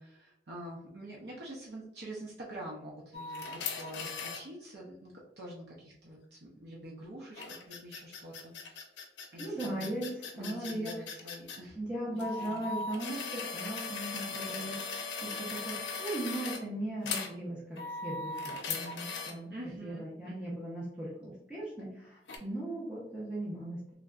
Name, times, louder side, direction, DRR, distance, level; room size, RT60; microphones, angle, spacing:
voice 1, 0.0-8.8 9.3-9.9 10.3-11.8 12.1-12.7 19.5-20.6, right 1 dB, 65° right, -4 dB, 0.7 m, -46 dB
sound 1, 3.1-4.4 7.4-11.6 12.2-16.6 17.1-17.3 17.8-19.3 22.3-22.4, left 4 dB, 80° left, 0.6 m, -38 dB
voice 2, 9.4-11.0 11.8-14.8 15.2-19.5 19.8-23.8, right 1 dB, 5° right, -8 dB, 0.8 m, -38 dB
3.3 x 2.5 x 2.4 m, 0.78 s
head